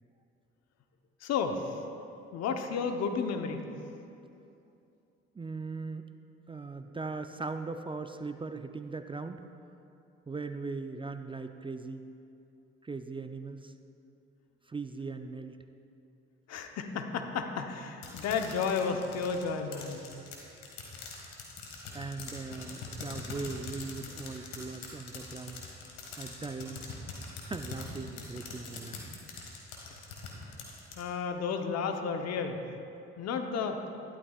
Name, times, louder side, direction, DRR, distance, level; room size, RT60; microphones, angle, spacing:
voice 1, 1.2-1.8 2.3-3.6 16.5-20.0 31.0-32.6 33.2-33.8, left 5 dB, 60° left, 5 dB, 1.0 m, -32 dB
voice 2, 5.4-6.0 6.5-9.4 10.3-12.0 12.8-13.7 14.7-15.6 21.9-25.6 26.2-26.8 27.4-29.0, right 4 dB, 15° right, 8 dB, 0.5 m, -39 dB
sound 1, 18.0-31.0, left 4 dB, 75° left, 1.8 m, -43 dB
14.0 x 12.0 x 2.4 m, 2.7 s
hypercardioid pair, 55°, 30 cm